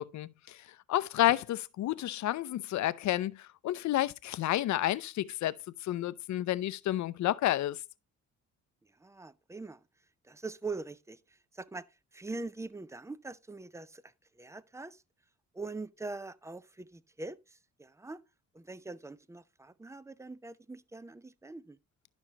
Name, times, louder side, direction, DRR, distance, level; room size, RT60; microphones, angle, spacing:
voice 1, 0.0-5.5 5.8-7.8, left 14 dB, 70° left, 0.6 m, -30 dB
voice 2, 9.0-9.8 10.2-11.9 12.1-15.0 15.5-18.2 18.5-21.8, right 3 dB, 10° right, 0.5 m, -43 dB
11.5 x 6.2 x 2.9 m
cardioid pair, 90°, 30 cm